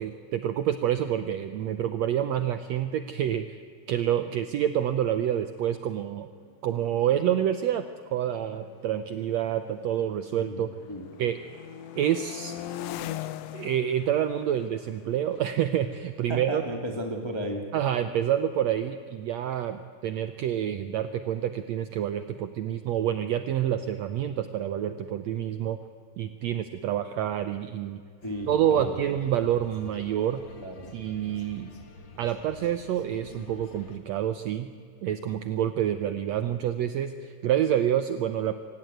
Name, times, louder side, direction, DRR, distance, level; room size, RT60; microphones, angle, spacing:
voice 1, 0.0-3.4 3.9-6.3 6.6-10.8 11.2-11.4 12.0-12.6 13.2-16.6 17.7-25.8 26.2-28.0 28.5-30.4 30.9-31.7 32.2-34.7 35.0-38.5, right 10 dB, 75° right, 10 dB, 1.7 m, -28 dB
sound 1, 5.0-5.1 5.2-5.6 6.4-10.3 10.6-17.3, left 13 dB, 75° left, 1.5 m, -43 dB
voice 2, 10.3-11.1 16.3-17.6 28.2-29.0 30.5-30.9, equal, 10° left, 3 dB, 1.6 m, -34 dB
sound 2, 28.2-34.0, left 2 dB, 40° left, 2.1 m, -48 dB
25.0 x 16.0 x 9.3 m, 2.2 s
omnidirectional pair, 3.8 m